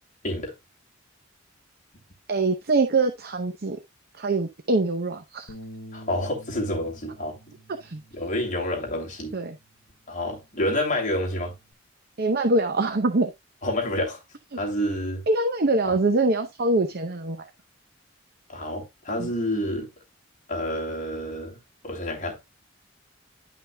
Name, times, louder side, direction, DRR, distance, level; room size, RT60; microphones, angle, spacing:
voice 1, 2.3-3.8 4.2-5.5 7.8-8.0 9.3-9.6 12.2-13.3 15.3-17.5 19.2-19.3, right 2 dB, 50° right, 0.7 m, -24 dB
Bass guitar, 5.5-10.0 10.3-11.7, equal, 80° left, 1.1 m, -48 dB
voice 2, 5.9-7.6 8.1-9.3 10.1-11.5 13.6-14.2 14.6-15.2 15.8-16.0 18.5-19.9 20.5-21.6 21.8-22.4, left 1 dB, 40° left, 2.7 m, -28 dB
10.5 x 5.6 x 2.3 m
head